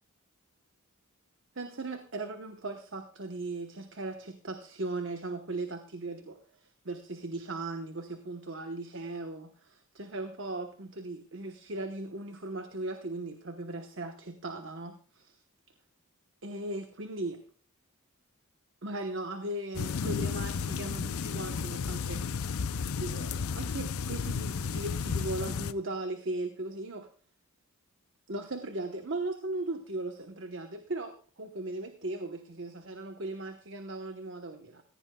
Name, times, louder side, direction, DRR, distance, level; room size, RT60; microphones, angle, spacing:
voice 1, 1.6-15.4 16.4-17.4 18.8-22.2 23.0-27.1 28.3-34.8, right 2 dB, 55° right, 5 dB, 1.0 m, -38 dB
sound 1, 19.7-25.7, left 5 dB, 75° left, 0.5 m, -33 dB
17.5 x 15.5 x 2.3 m, 0.40 s
head